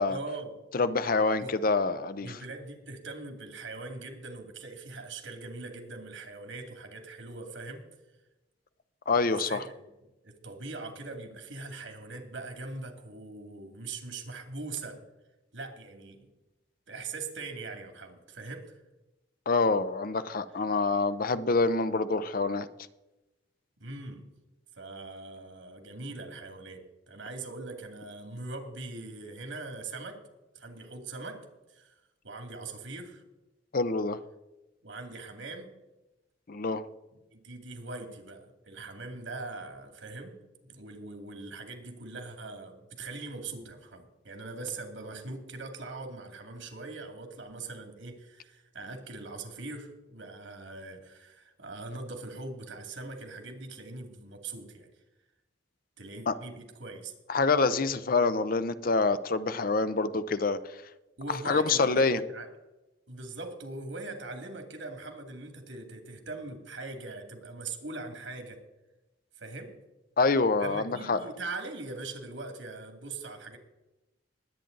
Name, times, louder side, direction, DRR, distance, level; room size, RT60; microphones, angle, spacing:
voice 1, 0.1-0.6 1.4-1.6 2.2-7.9 9.1-9.9 10.2-15.0 15.5-16.3 16.9-18.7 23.8-24.3 24.8-30.2 30.5-31.9 32.2-33.2 34.8-35.8 37.1-54.9 56.0-57.1 61.2-62.5 63.1-68.6 69.4-69.8 70.6-73.6, right 3 dB, 85° right, 5 dB, 2.6 m, -41 dB
voice 2, 0.7-2.3 9.1-9.6 19.5-22.7 33.7-34.2 36.5-36.8 56.3-56.4 57.3-60.6 61.3-62.2 70.2-71.2, left 3 dB, 50° left, 13 dB, 0.7 m, -26 dB
20.5 x 8.9 x 4.0 m, 1.0 s
head